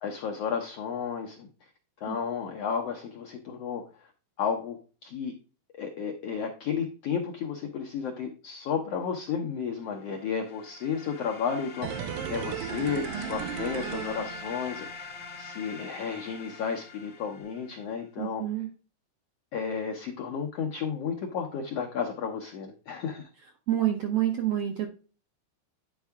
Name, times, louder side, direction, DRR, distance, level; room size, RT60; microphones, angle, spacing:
voice 1, 0.0-1.7 2.0-4.1 4.4-4.8 5.0-5.3 5.7-18.4 19.5-23.3, left 6 dB, 75° left, 2 dB, 1.4 m, -33 dB
sound 1, 10.1-17.8, left 4 dB, 60° left, 1.1 m, -43 dB
sound 2, 11.8-14.9 15.2-15.3, right 9 dB, 90° right, 2.3 m, -36 dB
voice 2, 18.2-18.7 23.7-24.9, right 12 dB, 70° right, 2 dB, 1.5 m, -27 dB
10.0 x 4.7 x 3.5 m, 0.35 s
omnidirectional pair, 4.0 m